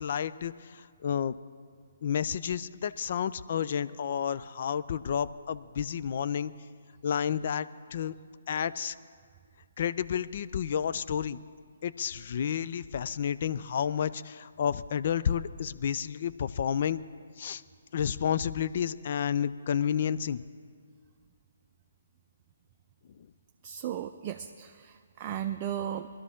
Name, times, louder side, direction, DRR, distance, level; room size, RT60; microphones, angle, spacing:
voice 1, 0.0-1.3 2.0-6.5 7.0-8.1 8.5-8.9 9.8-11.4 11.8-17.0 17.4-17.6 17.9-20.4, left 8 dB, 50° left, 14 dB, 0.5 m, -30 dB
voice 2, 23.6-26.1, right 10 dB, 30° right, 5 dB, 0.5 m, -35 dB
22.5 x 12.5 x 3.7 m, 2.1 s
figure-of-eight pair, 135°, 0 cm